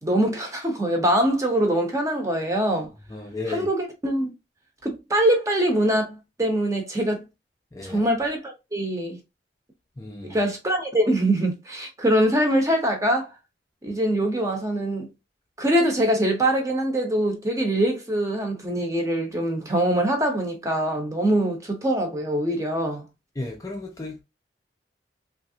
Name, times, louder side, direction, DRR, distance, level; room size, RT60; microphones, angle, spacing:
voice 1, 0.0-2.9 3.5-4.3 4.8-7.2 7.8-9.2 10.2-13.3 13.8-15.1 15.6-23.0, right 1 dB, 20° right, 0.7 m, -23 dB
voice 2, 3.1-3.7 7.7-8.1 10.0-10.4 23.4-24.2, left 2 dB, 20° left, 0.4 m, -34 dB
3.1 x 2.5 x 2.7 m
head